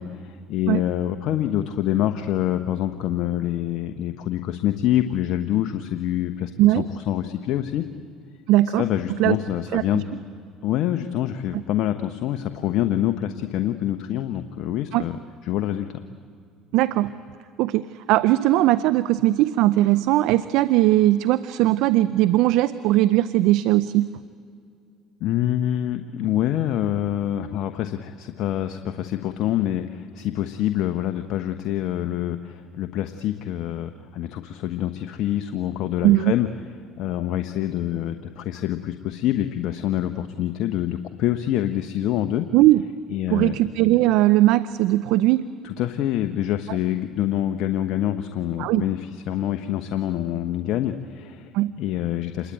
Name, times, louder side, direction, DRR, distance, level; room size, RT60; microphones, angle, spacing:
voice 1, 0.0-7.8 8.8-10.0 10.6-15.9 25.2-36.5 36.9-42.5 43.1-43.6 45.6-51.5 51.8-52.5, left 12 dB, 65° left, 8 dB, 1.0 m, -26 dB
voice 2, 8.5-8.8 9.1-9.4 9.7-10.0 11.5-11.6 14.9-15.0 16.7-17.1 17.6-24.1 36.0-36.3 42.5-42.8 43.3-45.5 48.6-48.8 51.5-51.7, right 15 dB, 70° right, 15 dB, 0.6 m, -19 dB
27.5 x 21.5 x 9.2 m, 2.4 s
hypercardioid pair, 75°, 0 cm